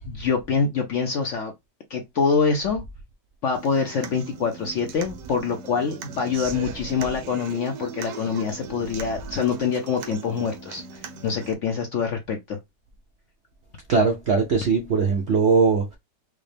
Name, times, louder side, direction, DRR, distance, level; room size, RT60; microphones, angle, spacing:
voice 1, 0.0-1.5 1.9-2.8 3.4-10.8 11.2-12.6, left 5 dB, 65° left, 0.7 m, -25 dB
Human voice / Acoustic guitar, 3.5-11.5, right 6 dB, 80° right, 1.3 m, -39 dB
voice 2, 13.9-16.0, right 4 dB, 65° right, 0.6 m, -20 dB
4.9 x 2.0 x 3.3 m
omnidirectional pair, 1.9 m